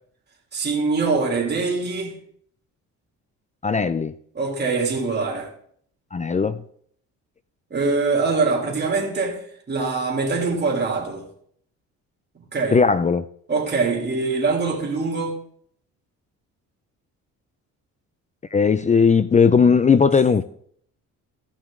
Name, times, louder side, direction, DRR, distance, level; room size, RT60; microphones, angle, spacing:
voice 1, 0.5-2.1 4.3-5.5 7.7-9.4 9.7-11.3 12.3-12.8 13.5-15.4 20.1-20.2, right 4 dB, 30° right, 3.0 m, -23 dB
voice 2, 3.6-4.1 6.1-6.6 12.7-13.3 18.5-20.4, left 5 dB, 20° left, 0.4 m, -17 dB
15.5 x 6.0 x 3.8 m
cardioid pair, 95°, 33 cm